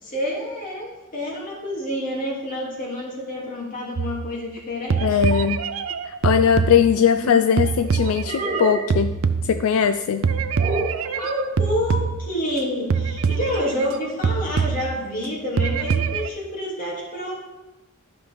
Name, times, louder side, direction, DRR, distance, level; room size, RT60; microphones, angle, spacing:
voice 1, 0.0-5.2 11.1-17.3, equal, 40° left, -3 dB, 2.3 m, -28 dB
sound 1, 4.0-4.6 4.9-7.2 7.6-9.9 10.2-12.6 12.9-14.0 14.2-15.2 15.6-16.3, right 5 dB, 75° right, 0.5 m, -24 dB
voice 2, 5.0-5.6 6.0-9.1 9.4-10.3, left 7 dB, 80° left, 9 dB, 0.4 m, -20 dB
sound 2, 6.7-7.5 8.2-9.1 10.6-11.1, right 2 dB, 30° right, 0.8 m, -29 dB
12.0 x 5.7 x 3.4 m, 1.0 s
head